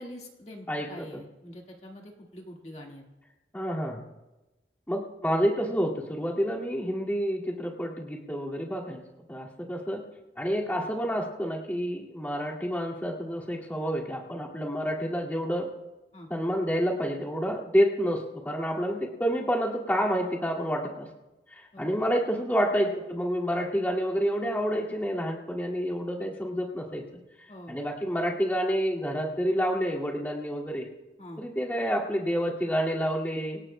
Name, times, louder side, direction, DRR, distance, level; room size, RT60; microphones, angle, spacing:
voice 1, 0.0-3.0 16.1-16.3 21.7-21.9 27.5-27.8 31.2-31.4, left 1 dB, 40° left, -1 dB, 1.8 m, -44 dB
voice 2, 0.7-1.1 3.5-4.0 4.9-9.0 9.3-10.0 10.4-15.7 16.3-21.1 21.5-27.0 27.7-30.9 31.4-33.6, equal, 10° left, -4 dB, 2.1 m, -28 dB
25.5 x 18.5 x 2.2 m, 1.1 s
head